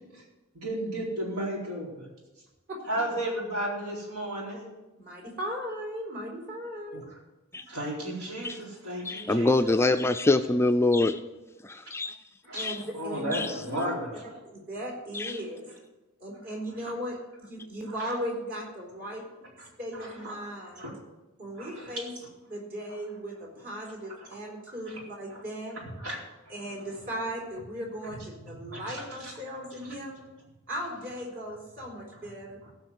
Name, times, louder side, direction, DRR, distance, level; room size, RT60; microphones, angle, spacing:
voice 1, 0.5-2.1 2.9-4.6 6.9-7.0 7.7-9.5 12.4-12.7 13.0-14.1 19.1-19.2 20.0-20.3 20.8-21.0 21.6-22.0 24.9-25.0 25.3-25.4 26.0-26.2 26.5-26.6 28.7-29.3, right 1 dB, 85° right, -3 dB, 4.3 m, -34 dB
voice 2, 5.0-7.0 12.5-14.0 14.2-15.7 16.2-19.2 19.8-20.9 21.4-22.1 22.5-25.8 26.5-30.2 30.7-32.6, equal, 45° right, -1 dB, 4.0 m, -37 dB
voice 3, 9.0-11.2 11.6-12.2 12.6-12.8 13.3-13.5 15.1-15.3, left 2 dB, 10° left, 8 dB, 0.4 m, -25 dB
16.0 x 5.7 x 7.9 m, 1.1 s
head